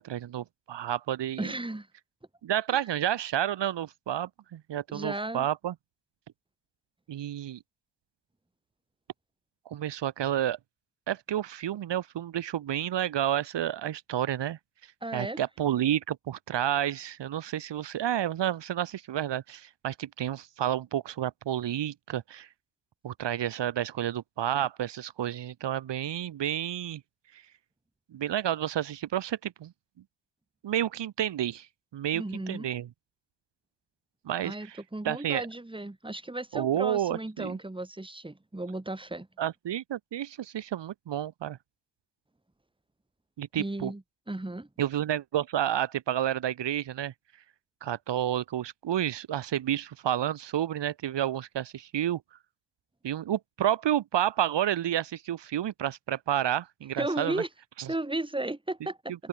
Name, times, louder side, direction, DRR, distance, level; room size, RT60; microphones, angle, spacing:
voice 1, 0.0-1.5 2.4-5.7 7.1-7.6 9.7-10.6 11.1-14.6 15.1-22.5 23.0-27.0 27.3-27.4 28.1-29.7 30.6-31.7 31.9-32.9 34.2-34.8 35.0-35.4 36.5-37.6 39.4-41.6 43.4-43.9 44.8-47.1 47.8-52.2 53.0-57.4 57.8-57.9, right 11 dB, 75° right, 1.2 m, -30 dB
voice 2, 1.4-1.9 4.9-5.5 15.0-15.4 32.1-32.7 34.4-39.3 43.6-44.0 44.3-44.7 57.0-57.5 57.9-59.1, right 2 dB, 10° right, 2.3 m, -34 dB
cardioid pair, 60°, 43 cm